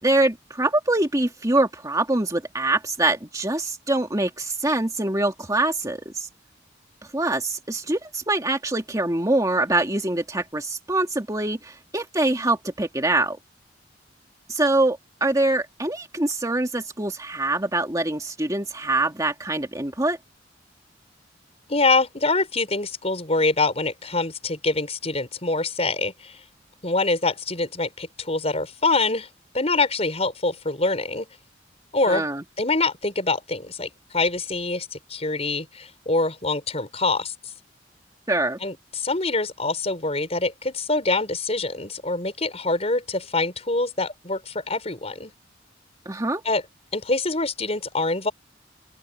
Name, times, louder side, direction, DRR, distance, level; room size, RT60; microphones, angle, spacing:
voice 1, 0.0-6.3 7.1-13.4 14.5-20.2 32.0-32.4 38.3-38.6 46.1-46.4, right 2 dB, 20° right, 2.4 m, -24 dB
voice 2, 21.7-26.4 26.8-29.3 29.5-31.3 31.9-32.3 32.6-37.3 38.6-45.3 46.5-46.6 46.9-48.3, left 3 dB, 35° left, 5.3 m, -25 dB
open air
head